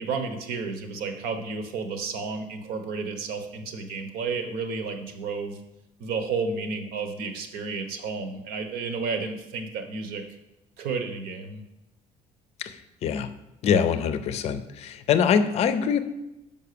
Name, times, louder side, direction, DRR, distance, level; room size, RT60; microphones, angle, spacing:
voice 1, 0.0-5.6 6.0-10.2 10.8-11.6, right 4 dB, 90° right, 7 dB, 1.1 m, -32 dB
voice 2, 12.6-13.3 13.6-16.0, left 7 dB, 45° left, 11 dB, 0.6 m, -24 dB
5.7 x 5.3 x 6.8 m, 0.97 s
cardioid pair, 170°, 15 cm